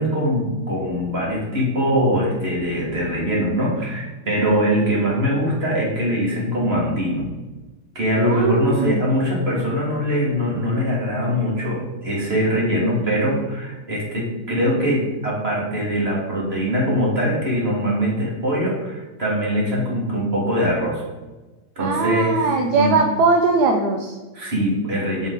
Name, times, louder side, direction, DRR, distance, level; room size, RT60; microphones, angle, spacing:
voice 1, 0.0-7.3 7.9-21.0 21.8-23.0 24.3-25.3, equal, 25° right, -4 dB, 3.0 m, -22 dB
voice 2, 8.3-9.0 21.8-24.1, right 3 dB, 60° right, 3 dB, 1.2 m, -20 dB
8.2 x 7.6 x 4.1 m, 1.2 s
omnidirectional pair, 2.4 m